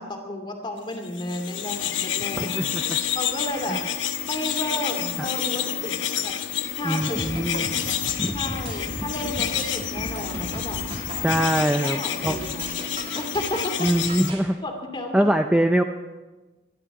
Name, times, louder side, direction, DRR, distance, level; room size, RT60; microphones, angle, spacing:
voice 1, 0.0-2.6 3.1-3.8 4.2-6.3 6.8-7.3 8.2-10.8 11.4-12.7 13.1-13.9 14.6-15.2, left 1 dB, 25° left, 3 dB, 2.6 m, -32 dB
sound 1, 1.0-14.3, left 9 dB, 85° left, 1.0 m, -29 dB
voice 2, 2.4-3.0 3.7-3.8 5.2-5.3 6.8-7.9 8.2-8.4 11.2-12.0 12.2-12.4 13.8-14.6 15.1-15.8, right 1 dB, 5° right, 5 dB, 0.4 m, -23 dB
sound 2, 7.0-14.5, right 1 dB, 30° right, 2.6 m, -36 dB
25.5 x 11.5 x 4.9 m, 1.2 s
head